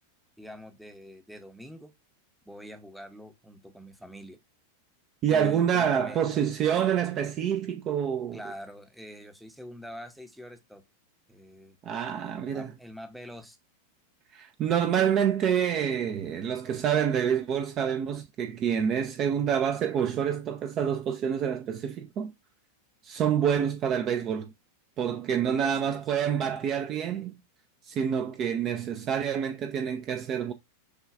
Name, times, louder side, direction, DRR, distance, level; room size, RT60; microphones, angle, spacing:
voice 1, 0.4-1.9 2.5-4.4 5.3-6.2 8.3-10.8 11.3-11.8 12.4-13.6 25.4-26.0, equal, ahead, 0.7 m, -44 dB
voice 2, 5.2-8.4 11.8-12.7 14.3-22.3 23.0-24.5 25.0-27.4 27.9-30.5, right 8 dB, 30° right, 0.4 m, -27 dB
6.2 x 2.3 x 2.4 m
figure-of-eight pair, 90°, 0 cm